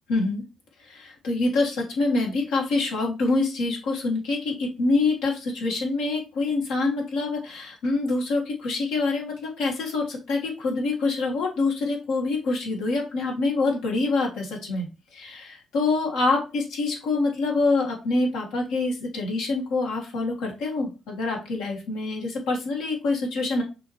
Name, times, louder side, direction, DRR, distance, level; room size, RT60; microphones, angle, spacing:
voice 1, 0.1-0.4 0.8-23.6, left 3 dB, 80° left, -1 dB, 1.5 m, -26 dB
6.0 x 2.9 x 3.0 m, 0.31 s
supercardioid pair, 55°, 0 cm